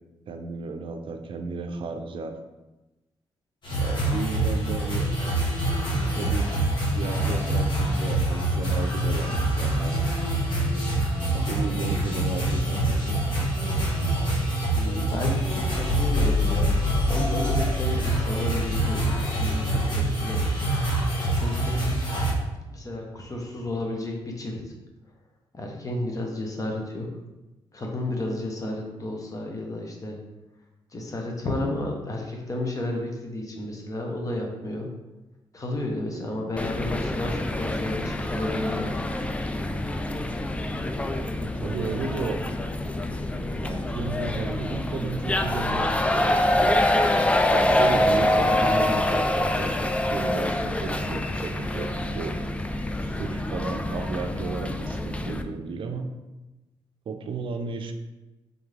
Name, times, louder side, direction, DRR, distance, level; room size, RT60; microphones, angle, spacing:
voice 1, 0.3-2.4 3.8-5.1 5.9-6.5 6.9-9.9 11.3-13.3 36.1-36.4 41.4-42.4 43.6-46.8 47.5-52.4 53.0-56.1 57.1-57.9, right 4 dB, 60° right, 6 dB, 0.5 m, -34 dB
sound 1, 3.6-22.3, right 1 dB, 50° left, 1.5 m, -25 dB
voice 2, 14.7-16.8 17.1-20.4 21.3-21.9 22.7-24.6 25.5-27.1 27.7-30.2 30.9-34.9 35.5-39.0, left 1 dB, 35° left, 1 dB, 1.0 m, -32 dB
sound 2, 15.4-19.9, left 6 dB, 80° left, 1.0 m, -29 dB
sound 3, 36.6-55.4, left 1 dB, 15° left, 0.3 m, -26 dB
3.9 x 3.5 x 3.3 m, 1.1 s
cardioid pair, 80°, 10 cm